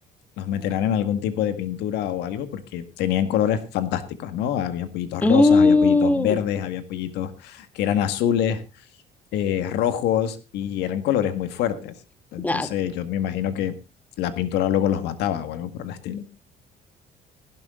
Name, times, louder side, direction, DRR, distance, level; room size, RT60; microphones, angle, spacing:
voice 1, 0.4-8.6 9.3-11.9 12.3-13.8 14.2-16.3, left 10 dB, 85° left, 1.8 m, -25 dB
voice 2, 5.2-6.4 12.4-12.7, left 3 dB, 10° left, 1.3 m, -17 dB
16.0 x 12.0 x 3.8 m
cardioid pair, 110°, 17 cm